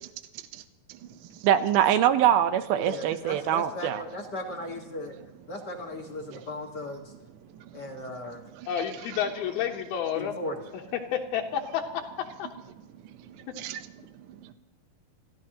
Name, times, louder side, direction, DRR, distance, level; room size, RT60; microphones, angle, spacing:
voice 1, 0.9-1.5 6.3-6.4 7.5-7.8 8.5-8.7 13.0-14.5, right 12 dB, 70° right, 10 dB, 2.1 m, -44 dB
voice 2, 1.4-4.0, right 10 dB, 85° right, 10 dB, 2.8 m, -23 dB
voice 3, 2.8-5.2 5.5-7.1 7.7-8.4 10.2-10.7, left 1 dB, 40° left, -1 dB, 1.7 m, -37 dB
voice 4, 8.7-10.3 11.1-11.8 12.4-12.5, left 9 dB, 85° left, -1 dB, 3.1 m, -29 dB
27.5 x 15.5 x 3.0 m, 1.0 s
omnidirectional pair, 4.2 m